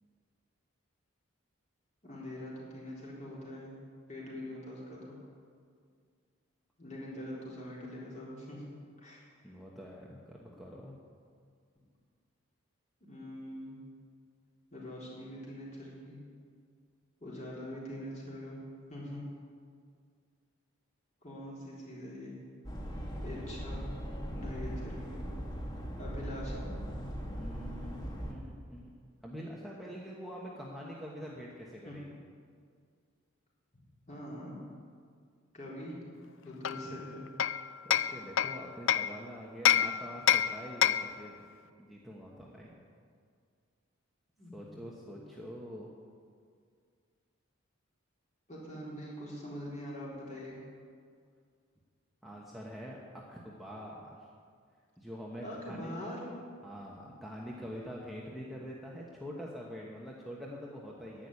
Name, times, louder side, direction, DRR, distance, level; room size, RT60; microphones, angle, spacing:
voice 1, 2.0-3.8 4.1-5.2 6.8-8.6 9.0-9.2 13.1-13.8 14.7-16.2 17.2-18.6 18.9-19.2 21.2-22.4 23.2-23.8 24.3-25.2 26.0-26.7 31.8-32.0 34.1-34.6 35.5-35.9 36.4-37.3 44.4-45.2 48.5-50.6 55.4-56.2, left 1 dB, 35° left, -5 dB, 3.9 m, -43 dB
voice 2, 9.4-11.0 27.2-28.9 29.2-32.1 37.8-41.4 41.8-42.8 44.5-45.9 52.2-54.1 55.0-55.9 56.6-61.3, equal, ahead, -4 dB, 1.1 m, -45 dB
sound 1, 22.6-28.3, equal, 20° left, 1.5 m, -39 dB
Hammer, 36.6-39.2 39.7-41.2, left 10 dB, 65° left, 0.4 m, -28 dB
11.0 x 8.6 x 9.7 m, 2.1 s
head